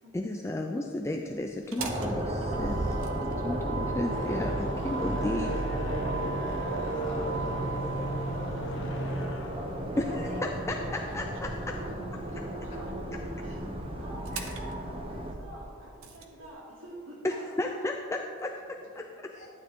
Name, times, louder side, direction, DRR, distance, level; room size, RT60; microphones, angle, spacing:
voice 1, 0.1-3.0 3.4-5.5 10.0-11.5 14.3-14.6 17.2-19.0, left 1 dB, 15° left, 2 dB, 0.4 m, -33 dB
Motor vehicle (road), 1.5-16.2, right 3 dB, 90° right, 1.0 m, -39 dB
sound 1, 1.8-15.3, equal, 25° right, 0.9 m, -35 dB
sound 2, 3.7-11.1, right 1 dB, 60° left, 1.2 m, -37 dB
voice 2, 4.9-5.7 6.0-9.2 9.9-11.2 11.8-11.9 12.4-12.9 13.4-13.7 14.0-17.4, right 1 dB, 65° right, -4 dB, 2.8 m, -48 dB
voice 3, 9.8-10.4 11.7-12.4 12.7-12.8 16.4-16.5 17.3-17.8 18.9-19.6, left 2 dB, 35° left, -5 dB, 2.5 m, -51 dB
12.0 x 9.3 x 3.6 m, 2.4 s
head